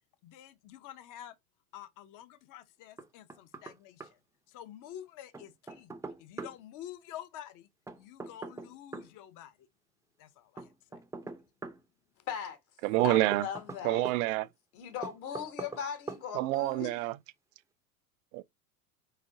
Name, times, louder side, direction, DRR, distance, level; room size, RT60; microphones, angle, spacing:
voice 1, 0.2-1.3 1.7-4.2 4.5-5.9 6.2-7.7 8.0-9.7 10.2-11.0, left 11 dB, 45° left, 0.8 m, -48 dB
Knock, 3.0-4.1 5.3-6.6 7.9-9.1 10.6-11.8 13.0-14.2 15.0-15.8 16.1-16.2, right 3 dB, 5° right, 0.6 m, -42 dB
voice 2, 12.3-12.6 13.0-14.1 14.7-17.0, left 8 dB, 70° left, 1.9 m, -39 dB
voice 3, 12.8-13.5 13.8-14.5 16.3-17.2 18.3-18.4, right 17 dB, 60° right, 0.5 m, -27 dB
4.3 x 4.0 x 2.7 m
hypercardioid pair, 85°, 46 cm